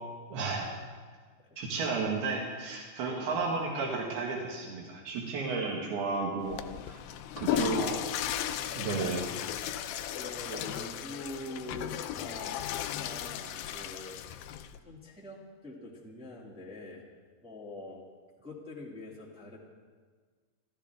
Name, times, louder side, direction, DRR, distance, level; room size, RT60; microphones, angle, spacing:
voice 1, 0.3-0.7 1.6-6.6 6.9-7.0 7.4-8.0 8.8-9.3 10.5-10.6, right 4 dB, 85° right, -1 dB, 3.6 m, -33 dB
voice 2, 3.2-3.5 7.3-7.9 10.1-14.5 14.8-17.0 17.4-18.0 18.4-19.6, left 1 dB, ahead, -4 dB, 1.4 m, -45 dB
Water / Toilet flush, 6.4-14.8, left 11 dB, 80° left, 2.3 m, -35 dB
28.5 x 13.5 x 3.6 m, 1.5 s
omnidirectional pair, 4.4 m